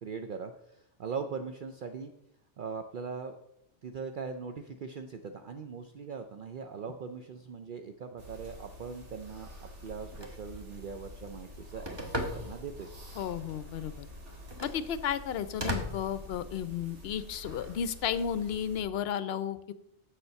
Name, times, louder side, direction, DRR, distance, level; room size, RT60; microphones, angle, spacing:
voice 1, 0.0-2.1 2.6-3.4 3.8-9.5 9.8-12.9, right 5 dB, 55° right, 6 dB, 0.7 m, -40 dB
sound 1, 8.2-18.8, left 1 dB, 85° right, 2.1 m, -49 dB
Telephone, 9.9-16.9, equal, 25° right, 1.2 m, -41 dB
voice 2, 13.2-14.1 14.6-19.7, left 8 dB, 65° left, 14 dB, 0.8 m, -33 dB
7.4 x 6.8 x 5.7 m, 0.80 s
omnidirectional pair, 1.2 m